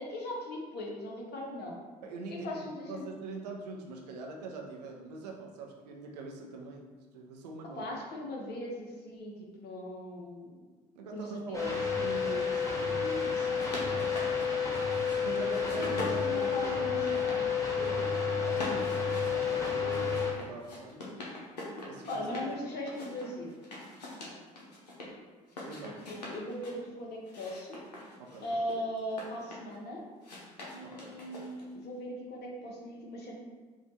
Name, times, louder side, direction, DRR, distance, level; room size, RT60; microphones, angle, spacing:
voice 1, 0.0-1.8 2.3-3.0 7.8-10.6 11.1-11.6 12.0-12.2 15.8-17.5 17.8-18.1 22.1-23.6 25.8-27.8 28.4-30.0 30.7-33.3, left 1 dB, 55° left, -2 dB, 1.2 m, -39 dB
voice 2, 2.0-6.9 7.1-7.9 10.9-14.4 15.2-16.8 18.4-18.9 19.3-21.1 21.9-22.3 25.7-26.0 28.2-28.5 30.8-31.1, right 3 dB, 80° right, 1 dB, 0.6 m, -43 dB
sound 1, 11.5-20.3, left 6 dB, 15° left, 1.2 m, -30 dB
sound 2, 13.5-15.2 15.5-17.4 17.7-18.2 18.5-22.5 22.9-25.1 25.5-26.8 27.3-29.8 30.2-31.7, left 1 dB, 90° left, 0.8 m, -43 dB
4.9 x 2.5 x 4.2 m, 1.4 s
hypercardioid pair, 55°, 21 cm